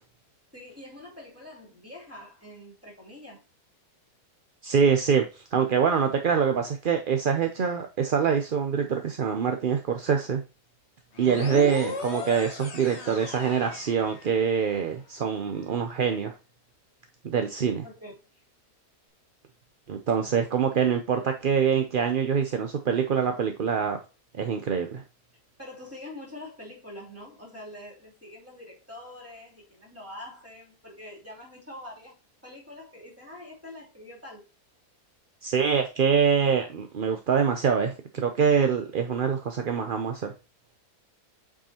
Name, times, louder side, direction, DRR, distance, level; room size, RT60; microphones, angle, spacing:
voice 1, 0.5-3.4 11.3-11.7 17.8-18.4 25.6-32.2 32.4-34.4, left 1 dB, 10° right, 3.2 m, -45 dB
voice 2, 4.6-10.4 11.2-16.3 17.2-17.8 19.9-24.0 24.3-25.0 35.4-40.3, right 7 dB, 50° right, 0.6 m, -25 dB
sound 1, 11.1-14.6, left 4 dB, 45° left, 1.4 m, -38 dB
8.3 x 4.8 x 2.9 m
omnidirectional pair, 1.6 m